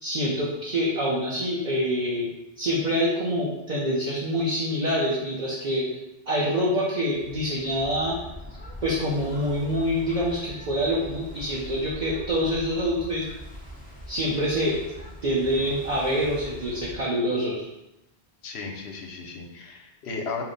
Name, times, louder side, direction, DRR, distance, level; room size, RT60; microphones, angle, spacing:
voice 1, 0.0-2.3 2.6-5.9 6.3-8.2 8.8-13.2 14.1-14.8 15.2-17.7, equal, 50° right, -5 dB, 0.7 m, -26 dB
sound 1, 7.1-17.0, equal, 10° left, 0.5 m, -42 dB
voice 2, 18.4-20.4, left 4 dB, 80° left, 2 dB, 0.9 m, -35 dB
4.4 x 2.1 x 3.9 m, 0.92 s
omnidirectional pair, 1.1 m